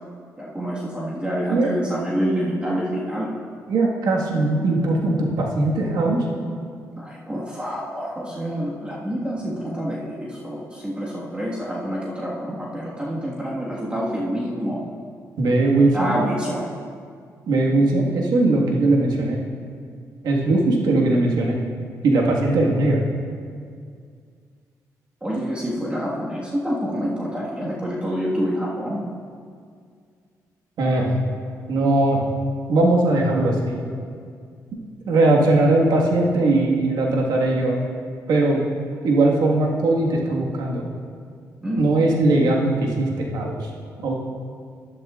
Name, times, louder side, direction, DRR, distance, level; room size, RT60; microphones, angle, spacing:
voice 1, 0.4-3.3 7.0-14.8 15.9-16.7 25.2-29.1 41.6-41.8, equal, 15° right, -6 dB, 1.7 m, -27 dB
voice 2, 3.7-6.2 15.4-16.2 17.5-19.4 20.2-21.6 22.0-23.0 30.8-31.1 31.7-32.2 32.7-33.9 35.1-37.9 38.3-38.6 39.0-40.8 41.8-43.7 44.0-44.1, right 2 dB, 80° right, -1 dB, 1.7 m, -19 dB
12.0 x 11.5 x 2.5 m, 2.1 s
cardioid pair, 70°, 7 cm